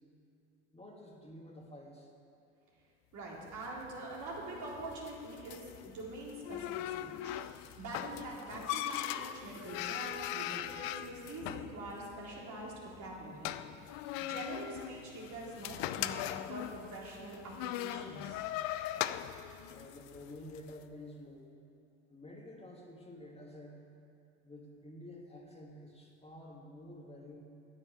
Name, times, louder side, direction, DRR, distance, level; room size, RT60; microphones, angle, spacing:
voice 1, 0.7-2.1 19.7-21.6 22.1-23.8 24.4-27.4, left 1 dB, 15° left, -1 dB, 2.4 m, -50 dB
voice 2, 3.1-7.4 7.8-13.9 14.2-18.5, right 2 dB, 55° right, -4 dB, 3.9 m, -44 dB
sound 1, 3.5-20.7, left 13 dB, 70° left, 0.6 m, -40 dB
9.9 x 8.4 x 9.4 m, 2.5 s
hypercardioid pair, 75°, 35 cm